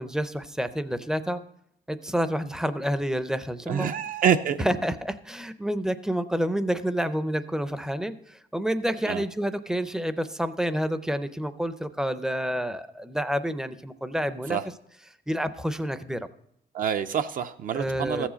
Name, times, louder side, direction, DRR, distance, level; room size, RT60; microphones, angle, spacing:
voice 1, 0.0-1.4 1.9-3.9 4.6-14.6 15.3-16.3 17.7-18.3, equal, 5° right, 12 dB, 0.5 m, -29 dB
voice 2, 3.7-4.6 9.1-9.2 14.5-14.6 16.7-18.3, right 8 dB, 55° right, 8 dB, 0.5 m, -26 dB
14.5 x 7.3 x 5.1 m, 0.75 s
cardioid pair, 170°, 17 cm